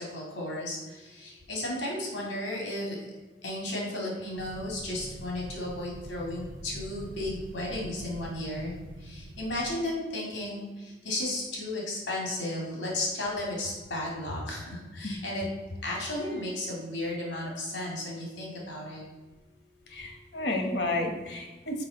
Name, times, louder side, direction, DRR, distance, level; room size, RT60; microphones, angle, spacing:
voice 1, 0.0-3.0 3.4-8.7 9.0-15.4 15.8-19.0, left 1 dB, 80° left, -3 dB, 2.1 m, -34 dB
sound 1, 4.4-9.8, right 1 dB, 85° right, 0.6 m, -44 dB
voice 2, 19.9-21.9, left 2 dB, 65° left, 3 dB, 1.2 m, -31 dB
6.7 x 5.0 x 3.8 m, 1.2 s
head